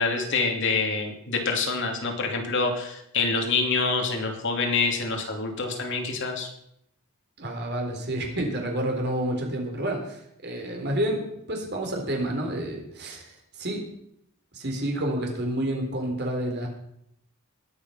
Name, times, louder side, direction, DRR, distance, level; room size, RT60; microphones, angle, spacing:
voice 1, 0.0-6.5, left 4 dB, 55° left, 3 dB, 2.7 m, -26 dB
voice 2, 7.4-11.2 11.5-13.2 13.6-13.8 14.5-16.7, right 1 dB, 50° right, 2 dB, 3.8 m, -29 dB
20.0 x 8.7 x 5.7 m, 0.75 s
head